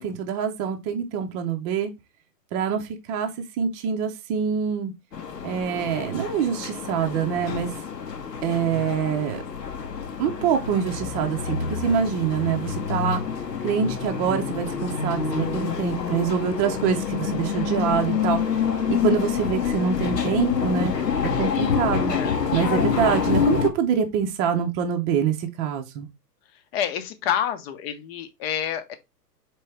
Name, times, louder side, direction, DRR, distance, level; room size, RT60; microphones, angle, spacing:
voice 1, 0.0-1.9 2.5-3.3 3.6-4.9 5.4-7.7 8.4-9.4 10.2-13.2 13.6-18.4 18.9-20.9 21.2-22.1 22.5-26.1, right 7 dB, 25° right, 0.7 m, -25 dB
sound 1, 5.1-23.7, left 6 dB, 85° left, 1.0 m, -27 dB
voice 2, 22.0-22.3 26.7-29.0, left 9 dB, 40° left, 0.8 m, -28 dB
4.5 x 3.0 x 3.3 m
hypercardioid pair, 120°, 48 cm